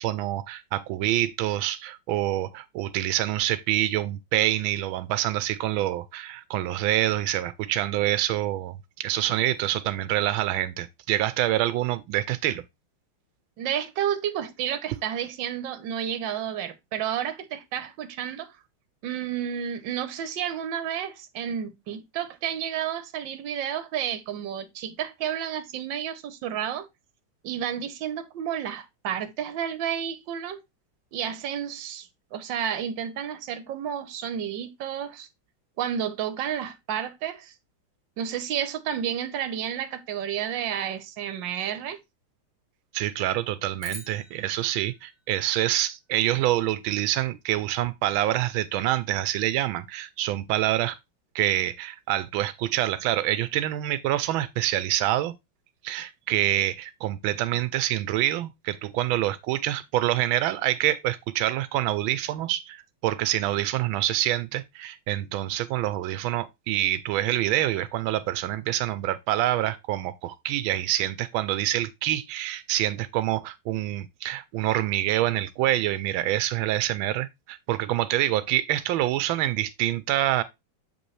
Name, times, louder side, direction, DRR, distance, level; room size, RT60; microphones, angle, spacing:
voice 1, 0.0-12.6 42.9-51.0 51.3-55.3 55.8-80.4, right 14 dB, 90° right, 1.4 m, -26 dB
voice 2, 13.6-18.5 19.0-26.9 27.4-30.6 31.1-35.3 35.8-37.5 38.2-42.0, right 9 dB, 70° right, 1.5 m, -31 dB
sound 1, 43.8-46.2, equal, 10° left, 2.0 m, -46 dB
7.4 x 5.2 x 3.2 m
omnidirectional pair, 2.1 m